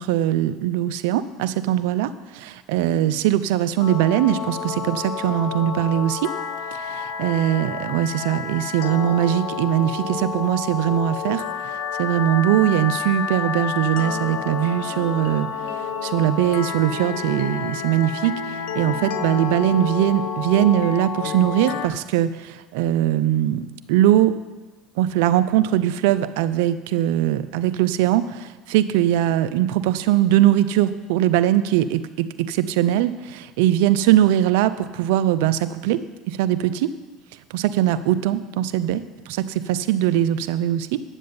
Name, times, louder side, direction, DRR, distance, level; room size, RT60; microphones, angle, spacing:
voice 1, 0.0-6.3 6.7-24.3 25.0-36.9 37.5-41.0, right 12 dB, 75° right, 13 dB, 0.6 m, -21 dB
sound 1, 3.8-21.9, left 6 dB, 70° left, 1.0 m, -29 dB
10.0 x 7.5 x 7.0 m, 1.2 s
hypercardioid pair, 85°, 0 cm